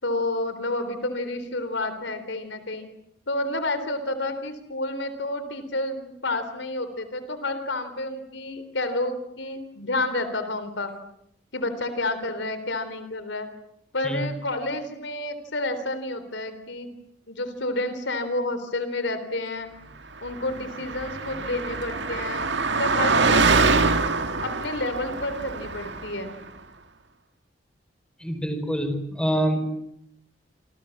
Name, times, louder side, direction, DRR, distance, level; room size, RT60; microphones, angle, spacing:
voice 1, 0.0-2.9 3.3-10.9 11.5-13.5 13.9-16.9 17.3-19.7 20.2-22.5 22.8-24.0 24.4-26.4, left 2 dB, 75° left, 11 dB, 3.9 m, -30 dB
Car passing by, 20.3-26.3, right 4 dB, 65° right, 2.1 m, -24 dB
voice 2, 28.2-29.6, right 1 dB, 5° left, 7 dB, 4.8 m, -26 dB
28.0 x 27.5 x 7.4 m, 0.74 s
head